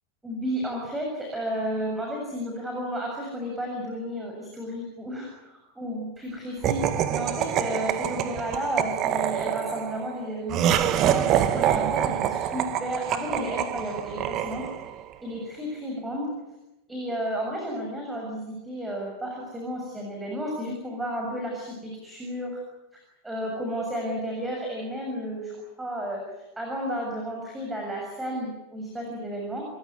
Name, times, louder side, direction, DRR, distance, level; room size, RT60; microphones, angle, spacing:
voice 1, 0.2-6.8 7.1-14.6 15.2-16.3 16.9-22.6 22.9-26.2 26.6-29.7, equal, 10° right, 0 dB, 7.1 m, -32 dB
Laughter, 6.6-15.0, right 10 dB, 35° right, 1.9 m, -26 dB
29.5 x 16.0 x 9.7 m, 0.96 s
figure-of-eight pair, 90°, 0 cm